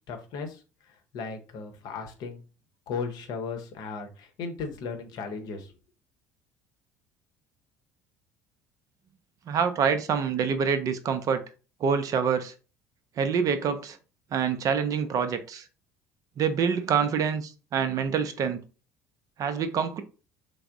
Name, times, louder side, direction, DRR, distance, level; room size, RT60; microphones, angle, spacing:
voice 1, 0.1-2.4 2.9-5.7, left 5 dB, 50° left, 5 dB, 0.8 m, -36 dB
voice 2, 9.5-11.4 11.8-12.5 13.2-14.0 14.3-15.6 16.4-18.6 19.4-20.0, right 6 dB, 40° right, 9 dB, 0.5 m, -26 dB
3.3 x 2.0 x 3.6 m, 0.34 s
figure-of-eight pair, 60°, 9 cm